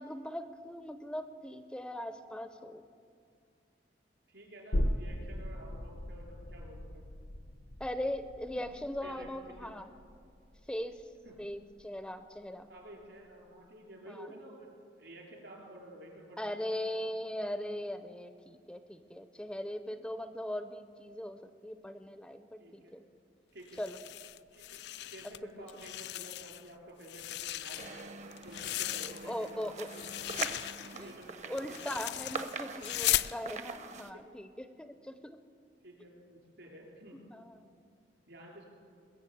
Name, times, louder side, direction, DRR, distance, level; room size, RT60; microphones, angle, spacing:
voice 1, 0.0-2.9 7.8-9.9 10.7-11.0 11.4-12.7 14.1-14.3 16.4-23.0 23.8-24.0 29.2-29.9 30.4-30.7 31.0-31.1 31.4-34.5 34.8-35.4 37.1-37.7, left 1 dB, 5° left, 10 dB, 0.5 m, -40 dB
voice 2, 4.3-7.0 9.0-9.7 11.2-11.3 12.7-16.8 22.6-22.9 23.5-23.8 24.5-24.8 25.1-28.0 28.4-30.1 30.9-32.2 35.8-37.2 38.3-38.7, right 1 dB, 75° right, -1 dB, 4.0 m, -51 dB
sound 1, 4.7-12.0 12.4-12.5, left 1 dB, 85° left, 0.9 m, -38 dB
sound 2, 23.7-25.4 25.7-26.7 27.0-29.5 29.8-33.3, left 14 dB, 65° left, 0.3 m, -37 dB
sound 3, 27.8-34.1, right 4 dB, 40° right, 0.7 m, -43 dB
21.5 x 7.2 x 8.4 m, 2.3 s
head